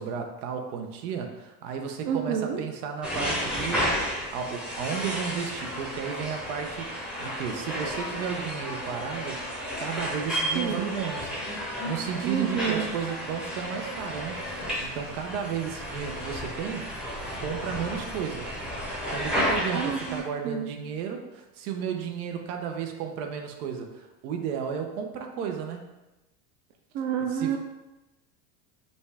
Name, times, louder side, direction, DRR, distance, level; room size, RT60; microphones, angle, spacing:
voice 1, 0.0-9.4 9.8-11.3 11.8-16.9 17.4-18.5 19.1-25.9 27.3-27.6, right 7 dB, 80° right, 4 dB, 0.8 m, -33 dB
voice 2, 2.0-2.6 10.5-10.9 12.2-12.8 19.7-20.7 26.9-27.6, right 8 dB, 45° right, 4 dB, 0.5 m, -29 dB
sound 1, 3.0-20.2, equal, ahead, 0.6 m, -32 dB
5.2 x 2.3 x 3.3 m, 1.0 s
supercardioid pair, 150°, 44 cm